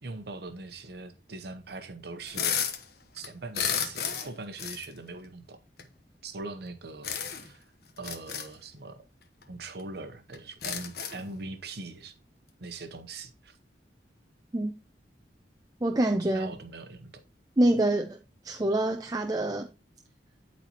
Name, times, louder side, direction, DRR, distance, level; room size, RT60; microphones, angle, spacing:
voice 1, 0.0-2.5 3.1-5.6 6.2-7.7 8.0-9.0 9.5-12.2 12.6-13.6 16.3-17.1, right 3 dB, 65° right, 0.9 m, -41 dB
sound 1, 2.3-2.8 3.2-4.3 4.6-4.8 5.8-5.9 7.0-7.5 8.0-8.5 9.4-9.5 9.8-9.9 10.3-11.3, left 8 dB, 60° left, 1.1 m, -32 dB
voice 2, 15.8-16.5 17.6-18.2 18.4-19.7, right 1 dB, 20° right, 0.6 m, -25 dB
12.5 x 4.2 x 3.0 m
head